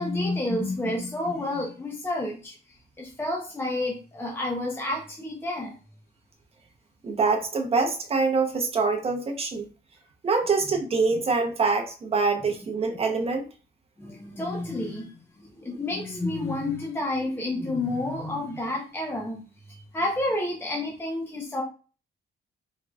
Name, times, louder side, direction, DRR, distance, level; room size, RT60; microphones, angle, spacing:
voice 1, 0.0-2.5 3.0-5.7 14.0-15.1 15.5-19.4 19.9-21.6, left 2 dB, 15° left, -1 dB, 0.8 m, -29 dB
voice 2, 7.0-9.6 10.2-13.4, right 4 dB, 35° right, 4 dB, 0.8 m, -25 dB
4.5 x 3.7 x 2.3 m, 0.36 s
cardioid pair, 145°, 18 cm